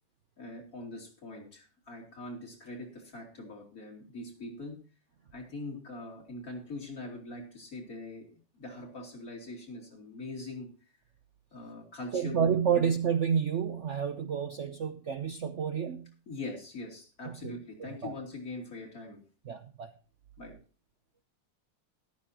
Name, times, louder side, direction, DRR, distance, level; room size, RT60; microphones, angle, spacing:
voice 1, 0.4-4.8 5.3-10.7 11.5-12.9 16.3-19.2 20.4-20.6, left 2 dB, 40° left, 0 dB, 3.4 m, -42 dB
voice 2, 12.1-16.1 17.2-18.1 19.4-19.9, right 7 dB, 85° right, 8 dB, 0.6 m, -30 dB
14.0 x 12.5 x 2.9 m, 0.37 s
omnidirectional pair, 2.3 m